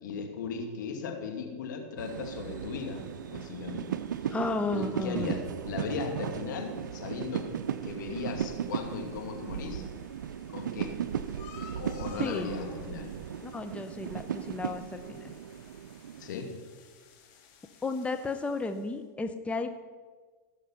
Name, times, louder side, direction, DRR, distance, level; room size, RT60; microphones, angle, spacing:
voice 1, 0.0-3.0 3.3-3.9 4.2-4.4 4.7-7.5 7.8-9.9 10.5-11.0 11.8-13.1 16.2-16.5, left 5 dB, 80° left, 3 dB, 2.3 m, -37 dB
sound 1, 2.0-19.0, left 6 dB, 55° left, 2.8 m, -57 dB
sound 2, 2.0-16.3, right 9 dB, 90° right, 0.4 m, -36 dB
voice 2, 4.3-5.3 12.2-12.6 13.4-15.3 17.8-19.7, left 3 dB, 10° left, 7 dB, 0.8 m, -33 dB
17.0 x 6.7 x 5.8 m, 1.4 s
hypercardioid pair, 105°, 10 cm